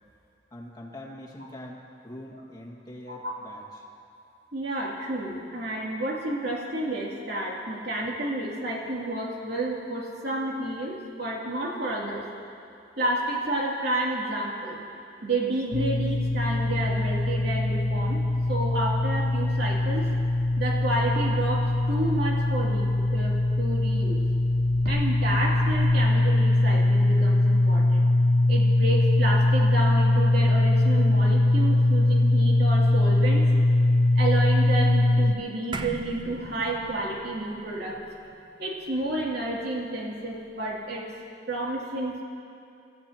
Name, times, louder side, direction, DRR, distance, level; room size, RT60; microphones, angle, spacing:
voice 1, 0.5-3.8, left 1 dB, 20° left, -3 dB, 2.0 m, -43 dB
voice 2, 4.5-12.2 13.0-14.8 15.2-18.2 18.5-20.0 20.6-24.2 24.8-28.0 28.5-33.4 34.1-38.0 38.6-41.1 41.5-42.2, right 1 dB, 60° right, -4 dB, 2.9 m, -30 dB
sound 1, 15.7-35.3, left 2 dB, 75° left, 0.5 m, -22 dB
sound 2, 35.7-40.3, right 2 dB, 25° right, 0.5 m, -41 dB
24.0 x 15.0 x 3.0 m, 2.6 s
head